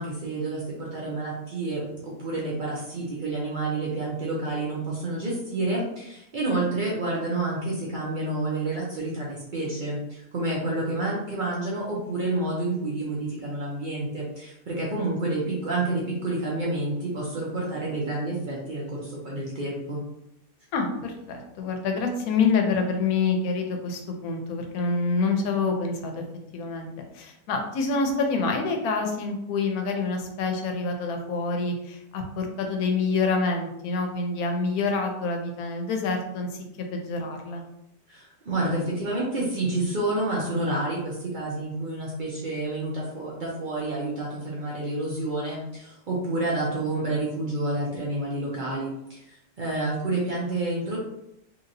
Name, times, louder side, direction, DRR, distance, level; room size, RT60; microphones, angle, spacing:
voice 1, 0.0-20.0 38.1-51.0, right 2 dB, 85° right, -5 dB, 0.4 m, -29 dB
voice 2, 20.7-26.2 26.5-36.5 36.8-37.6, left 4 dB, 70° left, 3 dB, 1.0 m, -27 dB
2.9 x 2.9 x 2.6 m, 0.82 s
omnidirectional pair, 1.7 m